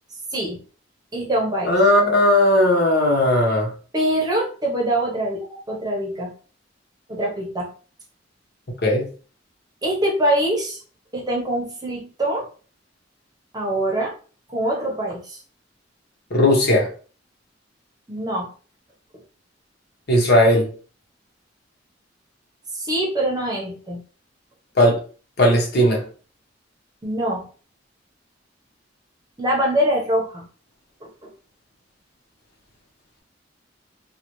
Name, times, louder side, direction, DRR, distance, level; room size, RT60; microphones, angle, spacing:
voice 1, 1.1-1.8 3.9-6.3 7.1-7.7 9.8-10.8 11.1-12.5 13.5-14.1 14.5-15.4 18.1-18.5 22.8-24.0 27.0-27.5 29.4-30.4 31.0-31.3, right 1 dB, 20° right, -2 dB, 1.0 m, -24 dB
voice 2, 1.6-3.7 8.8-9.1 16.3-16.9 20.1-20.7 24.8-25.0 25.4-26.0, left 1 dB, 60° left, 0 dB, 1.2 m, -17 dB
3.9 x 2.4 x 3.1 m, 0.39 s
head